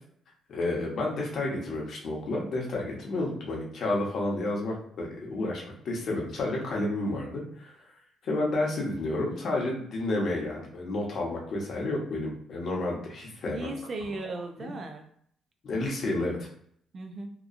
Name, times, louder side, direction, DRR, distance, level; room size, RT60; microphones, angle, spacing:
voice 1, 0.5-7.8 8.2-13.7 14.6-14.7 15.6-16.5, left 2 dB, 60° left, -2 dB, 0.9 m, -31 dB
voice 2, 13.4-15.0 16.9-17.3, right 2 dB, 45° right, 4 dB, 0.4 m, -36 dB
2.9 x 2.3 x 2.5 m, 0.64 s
cardioid pair, 90°, 0 cm